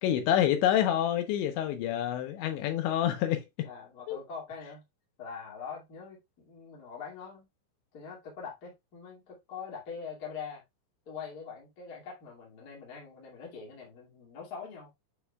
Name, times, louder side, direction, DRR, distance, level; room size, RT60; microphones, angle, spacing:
voice 1, 0.0-3.7 4.1-4.2, left 11 dB, 85° left, 3.2 m, -27 dB
voice 2, 3.6-4.8 5.2-7.5 7.9-10.6 11.1-14.9, left 6 dB, 30° left, 1.9 m, -43 dB
8.1 x 5.8 x 2.3 m
omnidirectional pair, 5.2 m